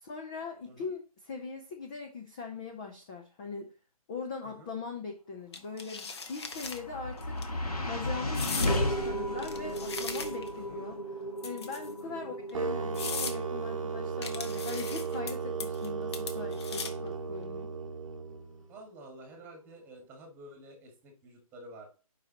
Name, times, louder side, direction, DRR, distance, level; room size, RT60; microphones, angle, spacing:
voice 1, 0.0-3.7 4.1-11.0 11.4-17.7, left 4 dB, 10° left, 3 dB, 0.4 m, -41 dB
sound 1, 5.5-6.8 7.2-7.4 8.3-8.8 9.4-10.6 11.4-12.0 12.5-12.6 12.9-13.4 14.2-15.3 15.6-15.9 16.1-17.1, left 5 dB, 45° left, 1.0 m, -38 dB
sound 2, 6.1-18.4, equal, 85° left, 1.9 m, -36 dB
voice 2, 10.5-10.8 12.0-12.4 18.7-21.9, right 1 dB, 10° right, 2 dB, 1.6 m, -50 dB
sound 3, 12.5-18.6, right 5 dB, 60° right, 0.8 m, -35 dB
7.6 x 5.2 x 2.9 m, 0.34 s
figure-of-eight pair, 150°, 19 cm